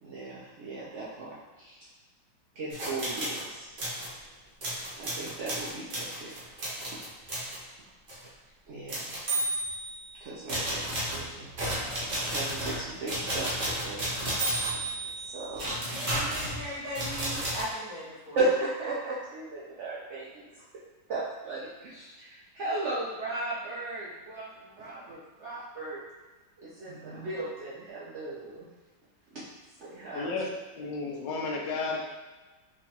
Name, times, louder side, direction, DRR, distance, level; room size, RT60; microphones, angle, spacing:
voice 1, 0.0-1.8 2.6-3.7 5.0-6.3 8.7-9.1 10.2-11.9 12.2-14.3 15.3-15.7 18.4-20.5 21.1-26.0 26.6-28.7 29.3-29.4 29.8-30.3, right 2 dB, 75° right, -8 dB, 0.6 m, -36 dB
sound 1, 2.7-3.4 3.8-4.1 4.6-7.6 8.1-8.3 8.9-10.1 10.5-17.6, right 1 dB, 45° right, 0.9 m, -33 dB
voice 2, 16.1-18.4, equal, 25° left, -11 dB, 0.7 m, -38 dB
voice 3, 30.1-32.0, left 3 dB, 80° left, 0 dB, 1.3 m, -33 dB
4.9 x 2.3 x 2.8 m, 1.2 s
omnidirectional pair, 2.0 m